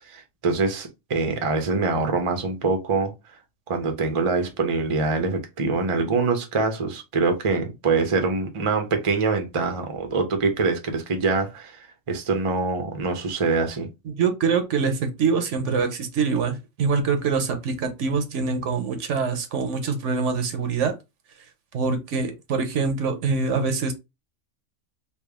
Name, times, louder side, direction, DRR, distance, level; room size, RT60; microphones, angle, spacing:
voice 1, 0.1-3.1 3.7-13.9, right 4 dB, 35° right, 0.6 m, -24 dB
voice 2, 14.1-20.9 21.7-23.9, right 5 dB, 70° right, 1.0 m, -24 dB
3.4 x 2.4 x 3.4 m
omnidirectional pair, 1.3 m